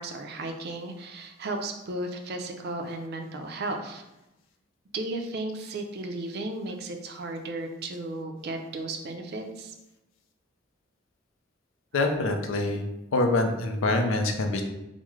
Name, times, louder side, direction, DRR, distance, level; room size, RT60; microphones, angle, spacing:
voice 1, 0.0-4.0 4.9-9.7, right 2 dB, 55° right, 4 dB, 0.4 m, -34 dB
voice 2, 11.9-12.8 13.1-14.6, left 2 dB, 85° left, 5 dB, 0.5 m, -25 dB
3.5 x 2.0 x 3.1 m, 0.94 s
head